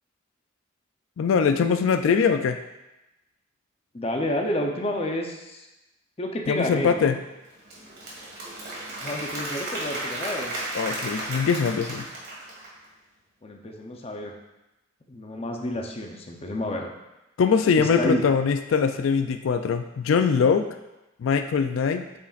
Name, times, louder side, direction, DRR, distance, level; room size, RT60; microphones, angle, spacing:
voice 1, 1.2-2.6 6.5-7.2 10.7-12.1 17.4-20.7 21.2-22.1, left 6 dB, 85° left, 8 dB, 0.4 m, -22 dB
voice 2, 3.9-5.7 6.2-7.1 9.0-10.5 13.4-14.3 15.1-16.9 17.8-18.2, left 1 dB, 30° left, 1 dB, 0.7 m, -30 dB
Applause / Crowd, 7.4-12.8, right 1 dB, 55° right, 1.8 m, -34 dB
8.2 x 5.1 x 2.5 m, 0.98 s
head